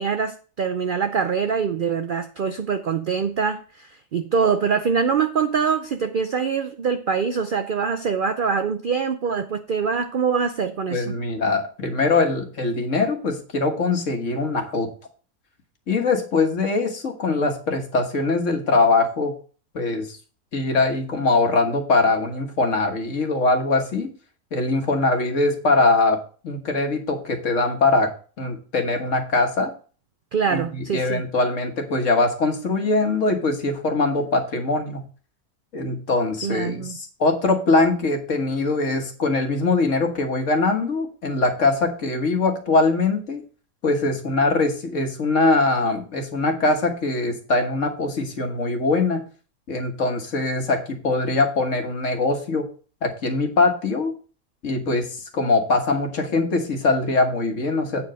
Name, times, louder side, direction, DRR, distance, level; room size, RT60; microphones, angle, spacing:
voice 1, 0.0-11.2 30.3-31.2 36.4-37.0, right 6 dB, 65° right, 0.5 m, -24 dB
voice 2, 10.9-14.9 15.9-19.3 19.7-20.2 20.5-24.1 24.5-26.2 26.4-28.1 28.4-29.7 30.5-35.0 35.7-43.4 43.8-49.2 49.7-52.7 53.0-54.1 54.6-55.1 55.3-58.0, left 3 dB, 55° left, 1.7 m, -22 dB
8.3 x 4.8 x 6.3 m
omnidirectional pair, 1.6 m